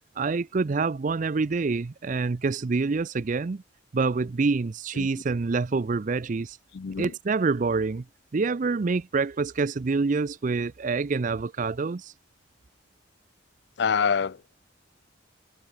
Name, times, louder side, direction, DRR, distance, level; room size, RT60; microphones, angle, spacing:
voice 1, 0.2-3.6 3.9-6.6 7.0-8.0 8.3-12.1, right 4 dB, 40° right, 0.4 m, -26 dB
voice 2, 6.7-7.1 13.8-14.4, left 6 dB, 60° left, 0.5 m, -26 dB
head